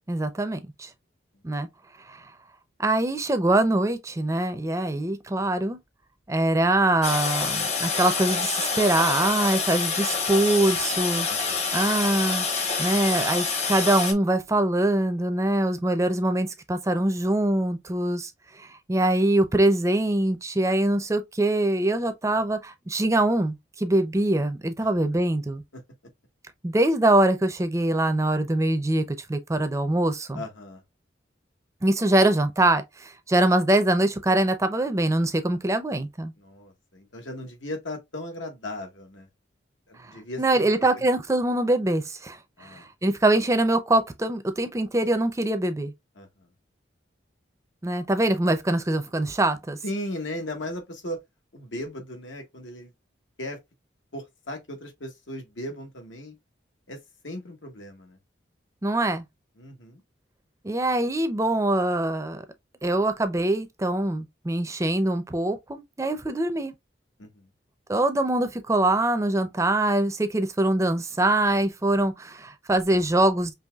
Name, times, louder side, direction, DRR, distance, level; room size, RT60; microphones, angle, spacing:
voice 1, 0.1-0.9 1.4-1.7 2.1-2.3 2.8-5.8 6.3-11.3 11.7-12.5 12.8-18.3 18.6-25.6 26.6-30.4 31.8-36.3 40.0-45.9 47.8-49.8 58.8-59.2 60.6-62.4 62.8-66.7 67.9-73.5, right 1 dB, 15° right, 0.4 m, -23 dB
Toilet flush, 7.0-14.1, left 5 dB, 35° left, 0.8 m, -27 dB
voice 2, 11.3-11.7 25.7-25.8 30.3-30.8 36.4-39.3 39.9-40.7 40.9-41.0 42.6-42.9 46.2-46.5 49.8-51.2 51.5-52.9 53.4-53.6 54.1-56.3 56.9-57.0 57.2-58.2 59.6-60.0 67.2-67.5, left 1 dB, 85° left, 1.3 m, -37 dB
5.5 x 3.0 x 2.3 m
head